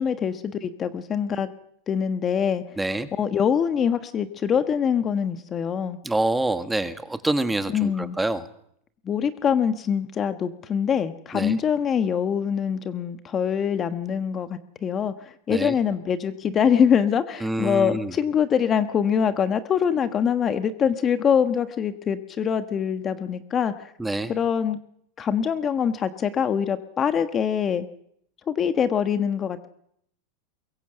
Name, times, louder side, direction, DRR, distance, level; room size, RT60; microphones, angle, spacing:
voice 1, 0.0-1.5 1.9-2.6 3.2-6.0 7.7-8.2 9.0-23.9 24.3-24.8 25.2-27.9 28.5-29.7, left 7 dB, 25° left, 11 dB, 1.2 m, -24 dB
voice 2, 2.8-3.1 6.0-8.5 11.3-11.6 15.5-15.7 17.4-18.1 24.0-24.3, right 2 dB, 5° right, 9 dB, 1.7 m, -26 dB
23.0 x 22.0 x 7.8 m, 0.71 s
supercardioid pair, 130°, 0 cm